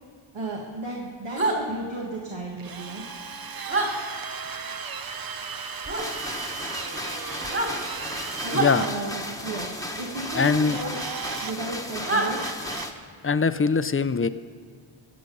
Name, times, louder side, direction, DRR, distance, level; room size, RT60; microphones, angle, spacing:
voice 1, 0.3-3.0 8.4-10.9 11.4-12.5, right 2 dB, 70° right, -2 dB, 1.8 m, -34 dB
sound 1, 1.4-1.6 3.7-3.9 5.9-6.1 7.4-7.7 8.5-8.7 10.8-10.9 12.1-12.3, right 2 dB, 30° right, 3.0 m, -25 dB
Drill, 2.6-8.9 10.3-11.5 11.9-13.0, right 6 dB, 45° right, 0.7 m, -36 dB
sound 2, 5.9-12.9, left 1 dB, 5° left, 1.2 m, -35 dB
voice 2, 8.5-8.9 10.3-10.8 13.2-14.3, left 5 dB, 25° left, 13 dB, 0.5 m, -22 dB
18.0 x 7.4 x 5.3 m, 2.1 s
wide cardioid pair, 70°, 49 cm